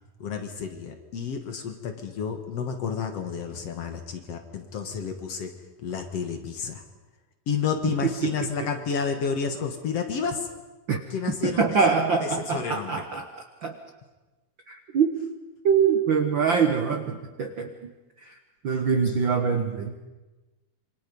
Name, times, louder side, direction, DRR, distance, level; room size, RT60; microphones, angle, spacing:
voice 1, 0.2-5.6 5.8-6.8 7.5-10.5 11.1-13.1 18.7-18.8, left 6 dB, 55° left, 6 dB, 2.1 m, -31 dB
voice 2, 11.4-13.3 13.6-13.8 14.7-15.1 15.6-17.7 18.6-19.9, right 6 dB, 85° right, 6 dB, 1.0 m, -24 dB
27.0 x 24.5 x 5.4 m, 1.2 s
omnidirectional pair, 4.1 m